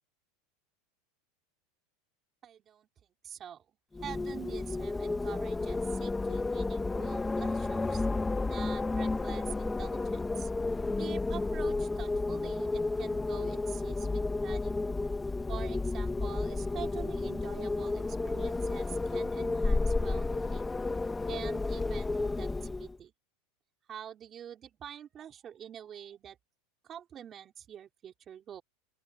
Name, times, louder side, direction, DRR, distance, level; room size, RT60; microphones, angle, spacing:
voice 1, 2.4-2.9 3.2-3.6 4.0-8.1 8.5-10.5 11.0-14.8 15.5-20.7 21.3-23.1 23.9-26.4 26.8-28.6, right 9 dB, 25° right, 4.9 m, -46 dB
Wind, 3.9-23.0, left 3 dB, 10° left, 1.4 m, -32 dB
open air
supercardioid pair, 150°, 0 cm